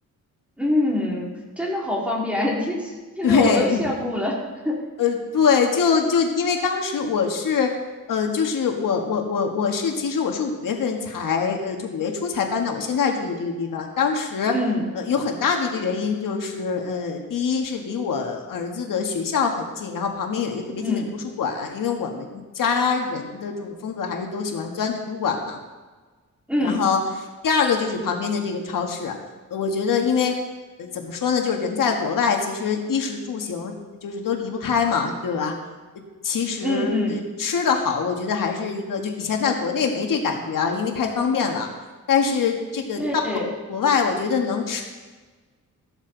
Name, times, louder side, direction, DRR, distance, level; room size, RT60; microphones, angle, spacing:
voice 1, 0.6-2.8 3.2-4.4 4.6-4.8 14.5-14.8 20.8-21.1 26.5-26.8 36.6-37.2 43.0-43.5, left 1 dB, 5° right, -3 dB, 2.7 m, -24 dB
voice 2, 3.2-3.8 5.0-7.7 8.1-14.5 14.9-25.6 26.6-29.2 29.5-30.3 30.8-33.7 34.0-35.5 35.9-41.7 42.1-43.4 43.7-44.8, left 6 dB, 85° left, 2 dB, 1.8 m, -24 dB
14.5 x 12.5 x 4.0 m, 1.3 s
wide cardioid pair, 165°, 32 cm